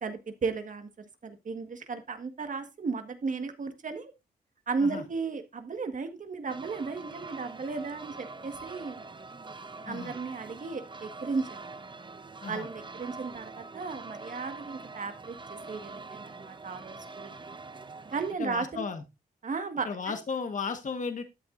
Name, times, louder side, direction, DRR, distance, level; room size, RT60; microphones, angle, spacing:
voice 1, 0.0-0.9 1.2-4.1 4.7-9.0 9.8-11.6 12.5-15.4 15.7-17.3 18.1-18.8 19.4-20.2, right 4 dB, 55° right, 8 dB, 1.6 m, -35 dB
sound 1, 6.5-18.3, right 3 dB, 30° right, 0.8 m, -44 dB
voice 2, 18.4-19.0 19.8-21.2, left 5 dB, 50° left, 7 dB, 1.4 m, -34 dB
12.5 x 8.0 x 2.6 m, 0.24 s
cardioid pair, 60°, 16 cm